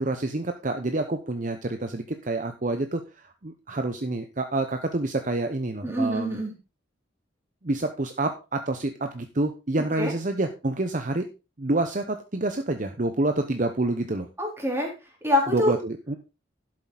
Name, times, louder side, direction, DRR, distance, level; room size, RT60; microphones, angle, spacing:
voice 1, 0.0-6.4 7.6-11.3 11.6-14.3 15.5-16.2, right 2 dB, 45° right, 7 dB, 0.8 m, -28 dB
voice 2, 5.8-6.5 10.0-10.1 14.4-14.9 15.2-15.7, left 1 dB, 15° right, -1 dB, 3.6 m, -25 dB
12.0 x 7.6 x 4.0 m, 0.29 s
head